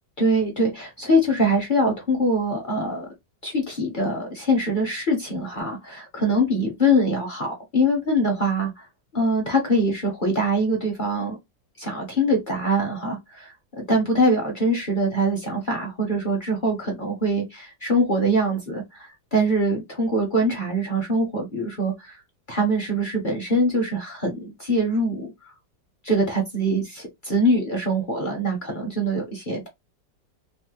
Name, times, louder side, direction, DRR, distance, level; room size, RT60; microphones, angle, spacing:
voice 1, 0.2-3.1 3.4-8.9 9.1-11.4 11.8-22.2 22.5-25.3 26.0-29.7, equal, 40° left, 0.7 m, -23 dB
3.2 x 2.1 x 3.0 m
omnidirectional pair, 1.9 m